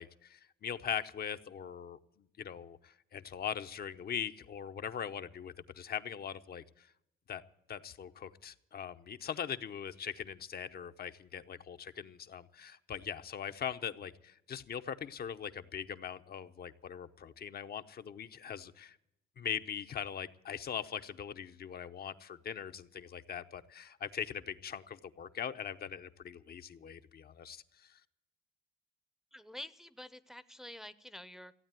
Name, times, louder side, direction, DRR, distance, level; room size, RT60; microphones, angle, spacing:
voice 1, 0.0-6.9 7.3-7.4 7.7-19.0 19.4-28.0, left 8 dB, 50° left, 9 dB, 0.8 m, -41 dB
voice 2, 29.3-31.5, left 1 dB, ahead, 13 dB, 0.7 m, -48 dB
15.5 x 8.8 x 8.9 m, 0.81 s
cardioid pair, 90°, 20 cm